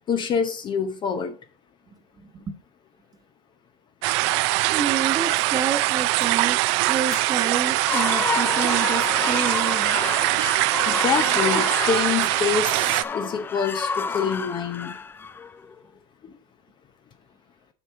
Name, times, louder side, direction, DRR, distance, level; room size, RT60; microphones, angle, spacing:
voice 1, 0.1-1.3 10.9-14.9, left 6 dB, 35° left, 0.7 m, -26 dB
voice 2, 2.2-2.6 4.7-10.0, right 6 dB, 25° right, 1.1 m, -29 dB
sound 1, 4.0-13.0, right 20 dB, 80° right, 0.4 m, -22 dB
sound 2, 4.2-10.0, left 6 dB, 70° left, 4.0 m, -49 dB
sound 3, 7.7-15.8, left 5 dB, 15° left, 0.3 m, -30 dB
7.9 x 5.7 x 4.6 m
cardioid pair, 145°, 14 cm